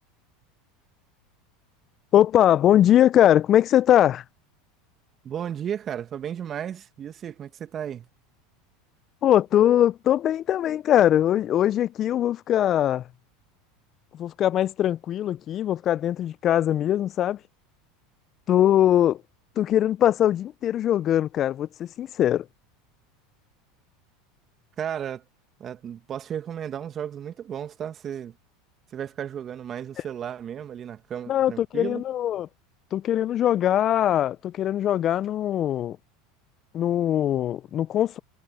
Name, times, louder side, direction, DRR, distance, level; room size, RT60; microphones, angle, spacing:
voice 1, 2.1-4.2 9.2-13.1 14.1-17.4 18.5-19.2 19.6-22.5 31.3-32.5 32.9-36.0 36.7-38.2, left 11 dB, 40° left, 0.8 m, -21 dB
voice 2, 5.2-8.1 24.8-25.2 25.6-28.3 28.9-32.0, right 9 dB, 35° right, 1.9 m, -34 dB
hypercardioid pair, 85°, 0 cm